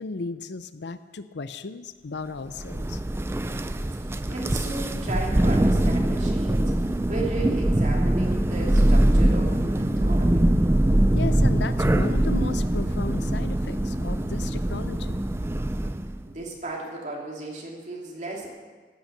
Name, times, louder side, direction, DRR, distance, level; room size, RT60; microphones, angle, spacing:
voice 1, 0.0-3.0 11.1-15.2, left 4 dB, 60° left, 12 dB, 0.6 m, -35 dB
Thunder, 2.5-16.2, right 1 dB, 15° right, 0.4 m, -23 dB
voice 2, 3.9-10.4 16.3-18.5, right 2 dB, 40° right, -2 dB, 2.7 m, -35 dB
15.5 x 9.1 x 6.7 m, 1.5 s
head